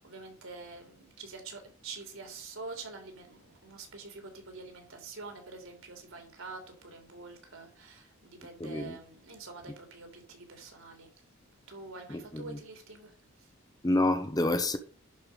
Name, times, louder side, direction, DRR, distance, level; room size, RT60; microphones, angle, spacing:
voice 1, 0.0-11.1 11.7-13.5, right 3 dB, 65° right, 3.1 m, -46 dB
voice 2, 8.6-8.9 12.1-12.4 13.8-14.8, left 2 dB, 20° left, 0.9 m, -28 dB
11.0 x 5.0 x 5.2 m
head